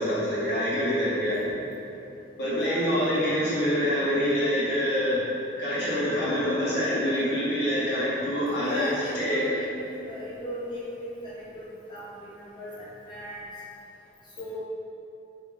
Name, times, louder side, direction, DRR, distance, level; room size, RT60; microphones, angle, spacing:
voice 1, 0.0-1.4 2.4-5.2 5.6-8.9 9.1-9.4, equal, 75° left, -9 dB, 0.9 m, -26 dB
voice 2, 2.5-3.0 8.6-13.5 14.4-14.6, equal, 25° left, -9 dB, 0.7 m, -36 dB
2.5 x 2.3 x 3.2 m, 2.7 s
head